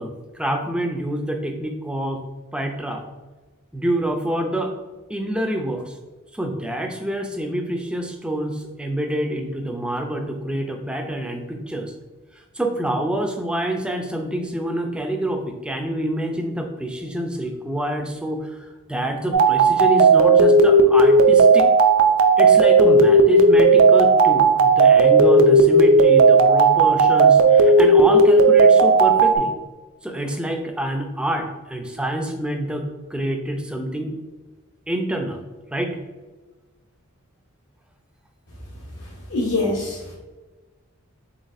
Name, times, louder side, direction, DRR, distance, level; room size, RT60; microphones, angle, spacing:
voice 1, 0.0-2.2 2.5-3.0 3.7-4.7 5.1-5.9 6.3-11.9 12.5-21.7 22.4-29.5 30.0-34.1 34.9-35.4 35.7-36.0, right 1 dB, 5° right, 3 dB, 0.4 m, -27 dB
sound 1, 19.3-29.4, right 3 dB, 80° right, 0.4 m, -14 dB
voice 2, 39.0-40.1, left 2 dB, 70° left, -6 dB, 0.9 m, -25 dB
4.0 x 3.9 x 2.5 m, 1.2 s
head